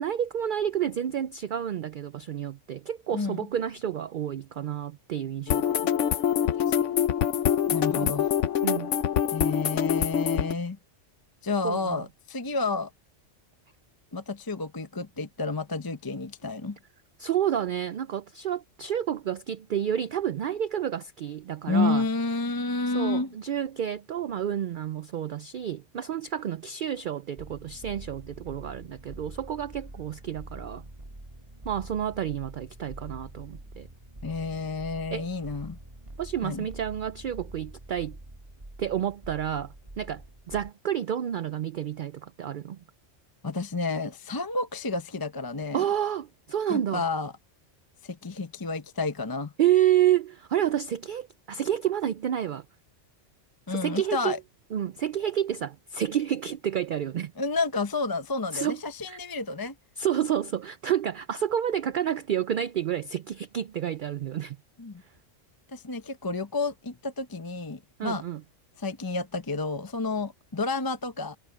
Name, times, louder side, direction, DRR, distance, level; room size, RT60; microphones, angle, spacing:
voice 1, 0.0-5.9 8.0-8.1 8.6-8.9 11.6-12.0 17.2-22.1 22.9-30.8 31.6-33.9 35.1-35.3 36.2-38.2 38.8-42.8 45.7-47.0 49.6-52.6 53.7-54.4 54.7-57.3 58.5-58.8 59.1-59.2 60.0-64.6 68.0-68.4, right 10 dB, 60° right, 0.5 m, -29 dB
voice 2, 3.1-3.5 7.7-8.3 9.3-10.8 11.4-12.9 14.1-16.8 21.7-23.3 34.2-35.8 36.4-36.7 43.4-45.8 46.7-47.3 48.0-49.5 53.7-54.4 57.4-59.7 64.8-65.0 65.7-68.2 68.8-71.4, left 3 dB, 20° left, 0.7 m, -30 dB
sound 1, 5.5-10.5, left 9 dB, 75° left, 1.1 m, -25 dB
sound 2, 27.4-40.7, right 1 dB, 25° right, 2.2 m, -45 dB
omnidirectional pair, 1.3 m